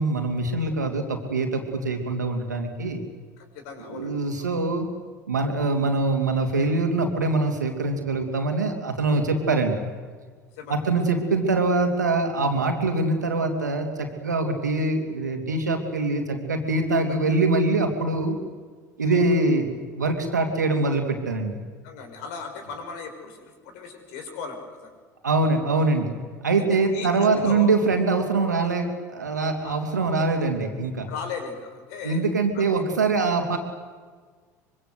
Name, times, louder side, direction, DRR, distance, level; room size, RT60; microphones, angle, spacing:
voice 1, 0.0-3.0 3.9-4.9 5.3-9.8 10.7-18.4 19.0-21.6 25.2-26.1 26.4-31.1 32.0-33.6, right 3 dB, 80° right, 4 dB, 3.2 m, -24 dB
voice 2, 3.4-4.1 4.4-4.5 10.5-11.0 19.1-19.3 21.8-24.9 26.7-27.7 29.6-29.8 31.1-32.2 32.5-32.8, left 5 dB, 60° left, 5 dB, 5.8 m, -37 dB
24.5 x 24.5 x 8.1 m, 1.5 s
figure-of-eight pair, 70°, 9 cm